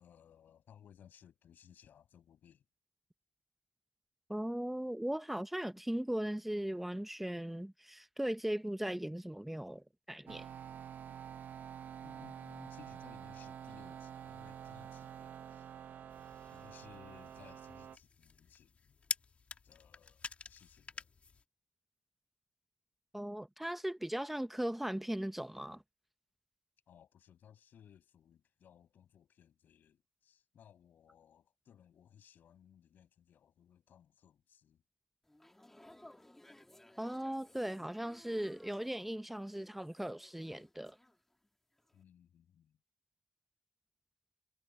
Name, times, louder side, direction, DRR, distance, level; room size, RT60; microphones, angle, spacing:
voice 1, 0.0-2.6 12.0-15.7 16.5-19.0 19.6-21.1 26.9-34.8 41.9-42.8, left 9 dB, 80° left, 6.9 m, -61 dB
voice 2, 4.3-10.5 23.1-25.8 37.0-41.0, right 1 dB, 5° right, 0.6 m, -38 dB
sound 1, 10.3-18.0, right 9 dB, 70° right, 0.7 m, -48 dB
sound 2, 16.1-21.4, left 5 dB, 45° left, 2.1 m, -47 dB
sound 3, 35.2-41.5 41.8-42.0, left 1 dB, 10° left, 2.0 m, -61 dB
cardioid pair, 110°, 3 cm